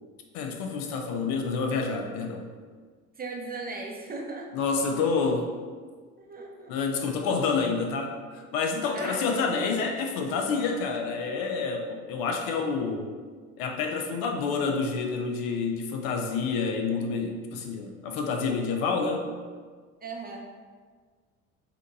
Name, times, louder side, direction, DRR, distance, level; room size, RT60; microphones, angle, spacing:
voice 1, 0.3-2.5 4.5-5.6 6.7-13.1 13.6-19.3, left 4 dB, 55° left, 4 dB, 0.6 m, -28 dB
voice 2, 3.2-4.7 6.2-7.0 8.9-9.6 20.0-20.5, right 3 dB, 20° right, -1 dB, 0.7 m, -38 dB
5.7 x 2.8 x 2.6 m, 1.6 s
figure-of-eight pair, 60°, 42 cm